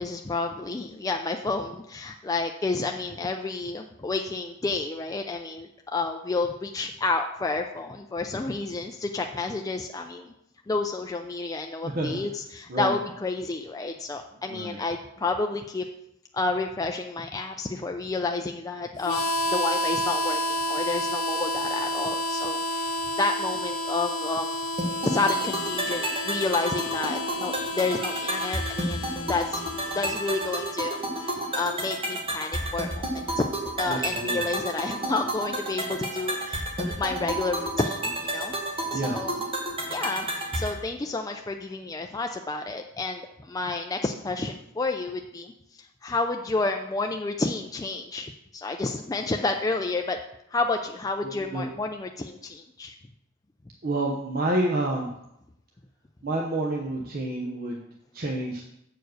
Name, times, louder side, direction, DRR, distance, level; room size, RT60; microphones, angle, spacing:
voice 1, 0.0-10.3 10.7-15.8 16.3-19.2 19.5-24.5 25.0-29.6 29.9-33.5 33.8-39.3 39.9-45.5 45.8-50.2 50.5-52.9, left 3 dB, 15° left, 4 dB, 0.4 m, -30 dB
Harmonica, 19.0-31.7, equal, 75° left, 0.6 m, -31 dB
sound 1, 24.8-40.8, right 1 dB, 25° right, 1.2 m, -31 dB
voice 2, 33.9-34.5 38.9-39.2 51.2-51.7 53.8-55.1 56.2-57.8 58.1-58.6, right 1 dB, 45° right, -1 dB, 0.8 m, -29 dB
7.9 x 4.8 x 6.4 m, 0.80 s
head